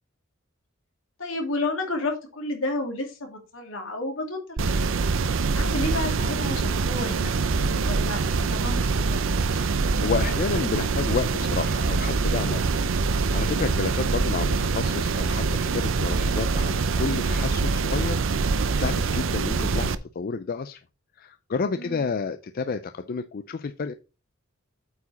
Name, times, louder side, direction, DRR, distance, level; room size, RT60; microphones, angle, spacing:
voice 1, 1.2-4.4 4.8-5.0 5.5-9.2 13.7-13.9 21.8-22.1, left 2 dB, 80° left, 2.4 m, -31 dB
sound 1, 4.6-19.9, right 4 dB, 70° right, 0.6 m, -24 dB
voice 2, 9.5-12.6 13.0-20.8 21.2-23.9, left 5 dB, 45° left, 0.4 m, -30 dB
8.3 x 4.8 x 4.2 m
head